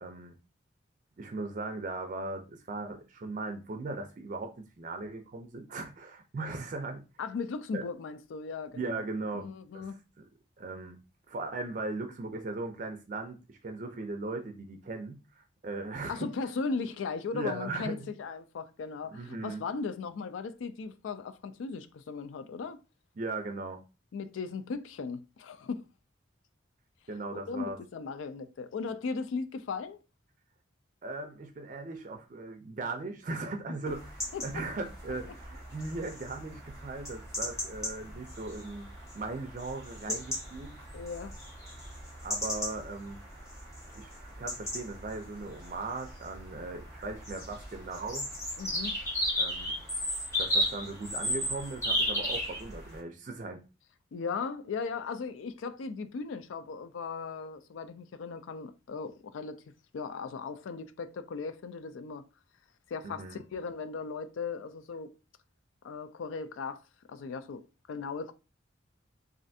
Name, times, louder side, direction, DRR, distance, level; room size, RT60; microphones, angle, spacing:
voice 1, 0.0-0.3 1.2-7.0 7.7-7.8 8.7-9.5 9.7-10.0 10.6-11.0 11.3-16.3 17.3-18.1 19.1-19.6 23.2-23.8 27.1-27.8 31.0-34.1 34.4-38.9 39.1-40.7 42.2-43.2 44.0-48.3 49.4-49.7 50.4-53.6 63.0-63.4, right 3 dB, 40° right, 0.4 m, -38 dB
voice 2, 7.2-9.0 9.3-10.0 16.1-22.8 24.1-25.8 27.3-30.0 33.9-34.0 34.3-34.6 40.1-40.2 40.9-41.3 48.6-49.0 54.1-59.6 59.9-62.2 62.9-65.1 65.8-66.8 67.1-68.3, left 4 dB, 80° left, 0.3 m, -37 dB
sound 1, 33.9-53.0, equal, 15° left, 1.1 m, -36 dB
3.2 x 2.5 x 2.6 m
head